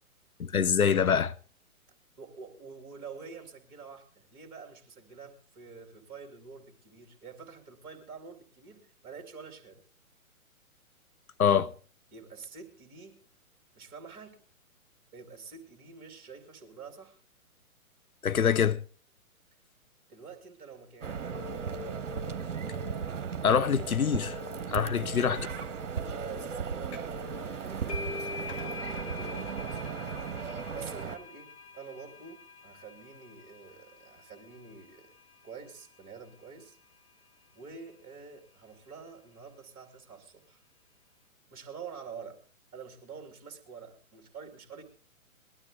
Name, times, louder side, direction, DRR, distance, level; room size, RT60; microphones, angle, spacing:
voice 1, 0.4-1.3 11.4-11.7 18.2-18.8 23.4-24.3 24.7-25.4, left 7 dB, 75° left, 0.7 m, -25 dB
voice 2, 2.2-9.8 12.1-13.2 13.7-14.4 15.1-17.2 20.1-21.6 25.0-25.6 26.0-28.3 29.0-29.8 30.7-35.1 35.4-36.8 37.5-40.6 41.5-42.4 42.7-44.8, right 5 dB, 20° right, 2.5 m, -47 dB
sound 1, 21.0-31.2, right 5 dB, 55° right, 1.2 m, -36 dB
sound 2, 26.9-27.2 27.5-34.8, left 4 dB, 50° left, 2.9 m, -43 dB
20.0 x 12.5 x 3.6 m
figure-of-eight pair, 125°, 43 cm